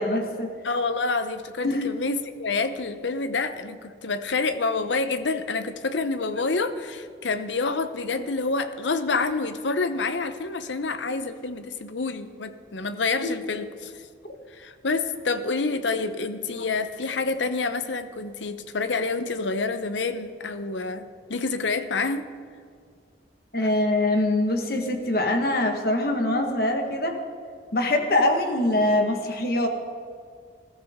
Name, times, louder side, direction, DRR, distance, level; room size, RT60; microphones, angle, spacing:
voice 1, 0.0-0.5 1.6-1.9 13.2-13.3 14.2-14.3 23.5-27.2 27.7-29.7, left 1 dB, 55° left, 4 dB, 1.5 m, -23 dB
voice 2, 0.6-14.1 14.5-22.2, left 3 dB, 80° left, 11 dB, 0.8 m, -28 dB
20.0 x 13.5 x 3.7 m, 2.1 s
head